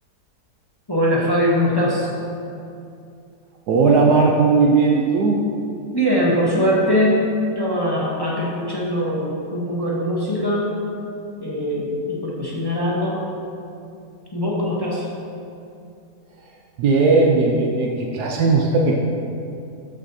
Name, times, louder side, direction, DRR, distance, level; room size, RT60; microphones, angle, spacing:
voice 1, 0.9-2.1 5.9-7.2 7.6-10.7 11.4-13.2 14.3-15.1, equal, 20° left, -5 dB, 0.6 m, -21 dB
voice 2, 3.7-5.4 16.8-18.9, right 4 dB, 80° right, 0 dB, 1.2 m, -17 dB
12.0 x 5.0 x 2.7 m, 2.6 s
omnidirectional pair, 1.7 m